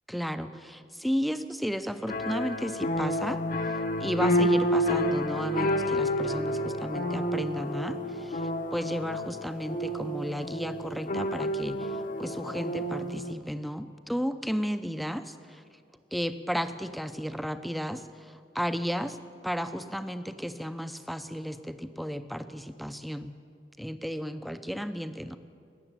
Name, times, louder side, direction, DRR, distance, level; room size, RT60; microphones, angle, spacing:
voice 1, 0.1-15.6 16.1-19.2 19.4-23.3 23.8-25.4, equal, ahead, 10 dB, 0.5 m, -34 dB
sound 1, 2.1-13.3, equal, 50° left, 0.9 m, -29 dB
19.0 x 7.1 x 8.9 m, 2.3 s
head